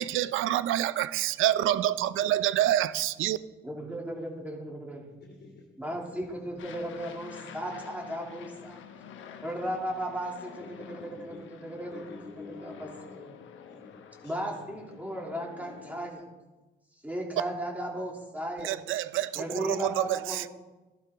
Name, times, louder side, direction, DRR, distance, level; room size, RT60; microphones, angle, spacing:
voice 1, 0.0-3.4 18.6-20.5, right 13 dB, 85° right, 15 dB, 0.6 m, -27 dB
voice 2, 3.6-5.1 5.8-8.8 9.4-12.0 12.4-12.9 13.3-13.4 14.2-16.2 16.9-18.7 19.3-20.5, right 1 dB, 10° right, -2 dB, 2.8 m, -36 dB
voice 3, 5.2-6.6 10.6-11.4 11.9-13.2 13.7-14.6 15.0-15.1, left 4 dB, 55° left, 2 dB, 2.6 m, -49 dB
Aircraft, 6.6-16.1, left 7 dB, 75° left, 1.1 m, -48 dB
15.0 x 11.5 x 3.7 m, 1.1 s
cardioid pair, 90°, 20 cm